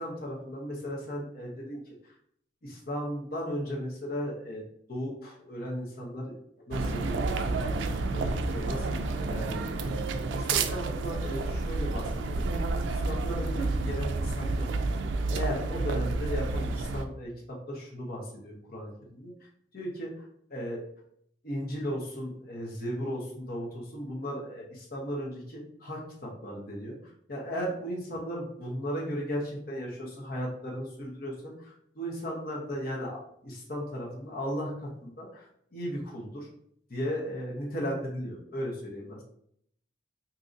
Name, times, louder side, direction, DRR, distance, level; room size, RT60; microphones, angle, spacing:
voice 1, 0.0-2.1 2.6-4.6 4.9-6.3 6.7-12.4 12.8-14.7 15.3-19.3 19.7-20.1 20.5-20.8 21.4-27.0 27.3-35.5 35.7-36.5 36.9-39.2, equal, 50° left, -3 dB, 0.8 m, -36 dB
sound 1, 6.7-17.0, right 3 dB, 80° right, 0.3 m, -30 dB
3.8 x 2.8 x 2.5 m, 0.69 s
head